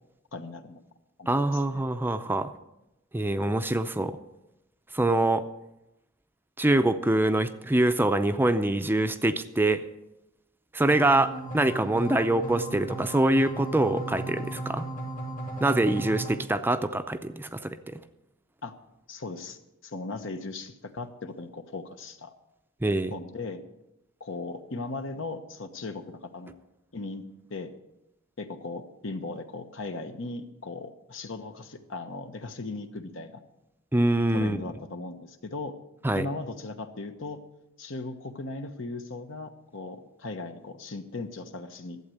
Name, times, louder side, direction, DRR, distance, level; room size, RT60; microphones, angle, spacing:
voice 1, 0.3-0.8 1.2-1.8 18.6-18.7 19.1-22.3 23.1-23.6 24.2-26.5 26.9-27.2 27.5-27.7 28.4-33.4 34.3-35.7 36.1-37.4 37.8-42.0, left 3 dB, 70° left, 8 dB, 1.1 m, -38 dB
voice 2, 1.3-2.5 3.1-4.2 4.9-5.4 6.6-9.8 10.7-14.8 15.6-18.0 22.8-23.1 33.9-34.6 36.0-36.3, right 1 dB, 10° right, 10 dB, 0.5 m, -24 dB
sound 1, 10.9-16.4, right 2 dB, 45° left, 2.1 m, -36 dB
12.0 x 8.2 x 7.8 m, 0.90 s
head